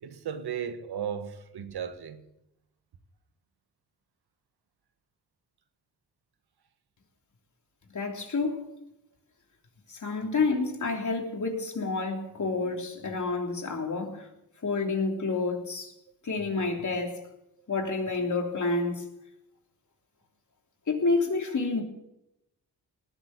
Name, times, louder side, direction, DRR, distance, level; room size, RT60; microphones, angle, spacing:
voice 1, 0.0-2.2, right 8 dB, 80° right, 1.5 m, -35 dB
voice 2, 7.9-8.6 9.9-14.3 14.6-15.9 16.2-17.2 17.7-19.0 20.9-21.8, left 3 dB, 50° left, 3.2 m, -29 dB
19.0 x 7.0 x 9.7 m
cardioid pair, 90°, 38 cm